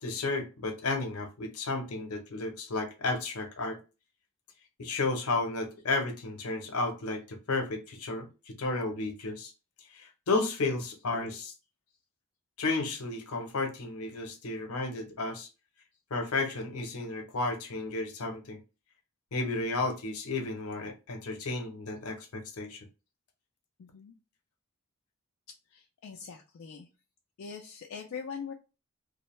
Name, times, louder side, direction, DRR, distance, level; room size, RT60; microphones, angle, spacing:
voice 1, 0.0-3.8 4.8-9.5 9.9-11.5 12.6-15.5 16.1-18.6 19.3-22.9, left 3 dB, 85° left, 0.7 m, -33 dB
voice 2, 23.8-24.1 25.7-26.9 27.4-28.5, left 6 dB, 65° left, 0.4 m, -42 dB
2.3 x 2.1 x 3.0 m
head